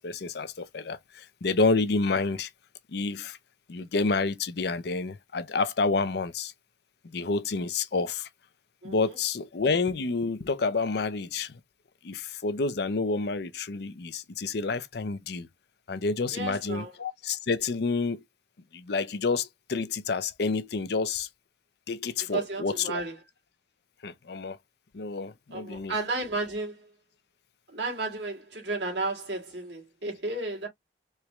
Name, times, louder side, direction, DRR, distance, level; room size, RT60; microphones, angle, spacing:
voice 1, 0.0-2.5 2.9-3.4 3.7-6.5 7.0-8.3 8.8-11.6 12.0-15.5 15.9-18.2 18.7-21.3 21.9-23.0 24.0-24.6 24.9-25.9, left 4 dB, 60° left, 0.6 m, -29 dB
voice 2, 8.8-9.2 16.3-16.9 22.3-23.1 25.5-26.9 27.7-30.7, right 2 dB, 70° right, 2.3 m, -33 dB
4.5 x 3.1 x 2.3 m
head